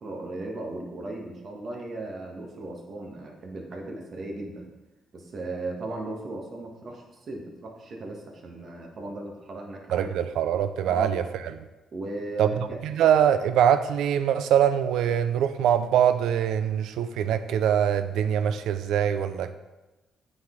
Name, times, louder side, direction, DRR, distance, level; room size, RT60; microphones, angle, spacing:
voice 1, 0.0-4.6 5.1-10.1 10.9-11.2 11.9-12.8, right 2 dB, 50° right, 0 dB, 1.4 m, -36 dB
voice 2, 9.9-11.2 12.4-19.5, right 9 dB, 85° right, 11 dB, 0.4 m, -23 dB
8.7 x 3.9 x 3.8 m, 1.1 s
cardioid pair, 90°, 0 cm